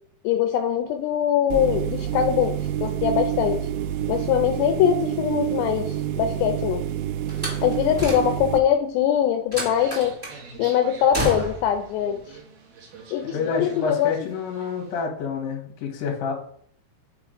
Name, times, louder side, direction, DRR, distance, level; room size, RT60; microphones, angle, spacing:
voice 1, 0.2-3.6 4.1-6.8 7.6-10.2 10.6-12.4 13.1-14.1, left 9 dB, 85° left, 6 dB, 2.7 m, -22 dB
sound 1, 1.5-8.6, right 11 dB, 80° right, 2.6 m, -28 dB
Slam, 7.3-8.6 9.5-10.4 11.1-11.8, equal, 5° right, 1.9 m, -30 dB
sound 2, 9.7-15.0, right 4 dB, 60° right, 1.9 m, -45 dB
voice 2, 13.2-16.3, left 5 dB, 60° left, 1 dB, 2.9 m, -28 dB
8.8 x 3.6 x 5.1 m, 0.63 s
omnidirectional pair, 5.0 m